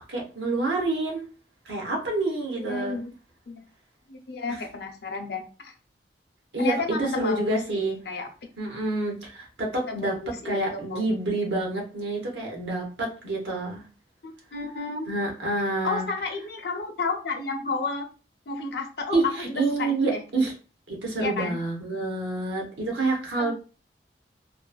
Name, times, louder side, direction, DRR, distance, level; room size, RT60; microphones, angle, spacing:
voice 1, 0.1-1.3 1.6-3.0 4.5-4.6 6.5-8.0 8.6-10.2 10.4-13.8 15.1-16.1 19.1-20.5 20.9-23.5, right 2 dB, 80° right, -1 dB, 0.9 m, -28 dB
voice 2, 2.5-3.1 3.5-3.6 4.1-5.7 6.6-8.3 9.9-10.6 10.9-11.1 14.2-15.1 15.8-18.1 18.5-20.2 21.2-21.6 23.4-23.5, left 3 dB, 65° left, 4 dB, 0.6 m, -32 dB
3.0 x 2.1 x 2.3 m, 0.35 s
head